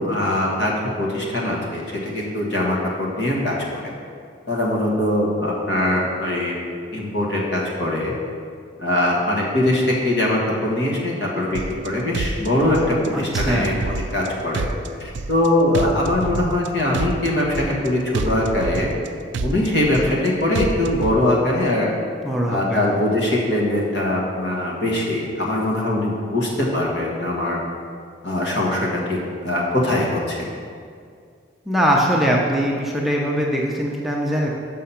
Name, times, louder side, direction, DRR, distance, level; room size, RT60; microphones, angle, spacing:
voice 1, 0.0-3.8 4.5-6.6 6.9-8.1 8.8-14.7 15.0-18.9 19.4-21.9 22.5-27.6 28.2-30.5, left 1 dB, 65° left, -3 dB, 1.5 m, -22 dB
sound 1, 11.5-11.9 12.1-13.1 13.3-14.3 14.5-15.5 15.7-16.7 16.9-17.9 18.1-19.1 19.3-20.3 20.5-21.1, right 3 dB, 70° right, 0.4 m, -27 dB
voice 2, 13.1-13.7 22.2-22.9 31.7-34.5, equal, ahead, -3 dB, 0.6 m, -21 dB
6.2 x 5.7 x 5.7 m, 2.2 s
head